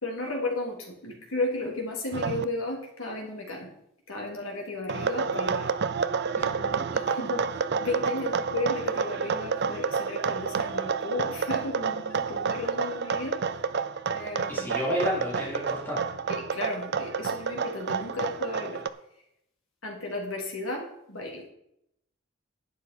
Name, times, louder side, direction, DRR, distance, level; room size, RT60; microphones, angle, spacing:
voice 1, 0.0-3.7 4.1-5.7 6.4-13.4 14.1-14.8 16.3-18.8 19.8-21.5, left 2 dB, 75° left, 0 dB, 3.1 m, -34 dB
sound 1, 2.1-2.4 4.9-18.9, right 5 dB, 55° right, 0.5 m, -29 dB
voice 2, 14.5-16.0, equal, 10° left, -6 dB, 3.8 m, -30 dB
11.5 x 9.4 x 4.4 m, 0.77 s
head